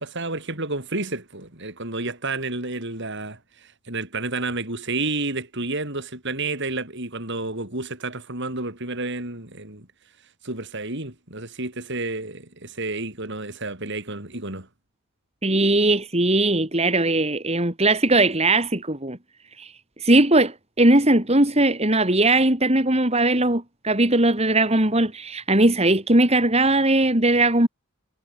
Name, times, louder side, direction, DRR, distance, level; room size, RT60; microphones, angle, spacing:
voice 1, 0.0-3.4 3.9-9.9 10.4-14.7, right 2 dB, 55° right, 6.6 m, -30 dB
voice 2, 15.4-19.2 19.6-19.7 20.0-27.7, right 2 dB, 30° right, 3.9 m, -19 dB
head